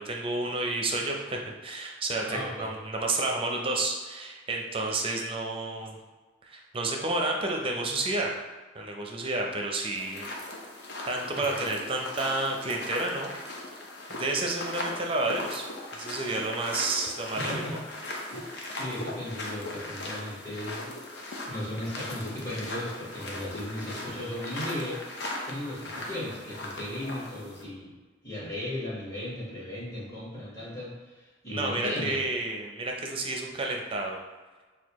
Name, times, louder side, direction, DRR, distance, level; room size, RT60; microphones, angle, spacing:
voice 1, 0.0-6.0 6.4-8.4 8.7-10.3 11.1-13.3 14.2-15.6 16.0-17.6 31.5-34.2, right 2 dB, 30° right, 1 dB, 0.5 m, -30 dB
voice 2, 2.3-2.7 11.3-11.6 17.3-17.8 18.3-20.9 21.5-25.0 25.4-27.9 28.2-32.2, left 1 dB, 15° left, -9 dB, 1.4 m, -36 dB
sound 1, 9.9-27.6, left 2 dB, 60° left, 0.7 m, -38 dB
6.5 x 2.3 x 3.0 m, 1.3 s
head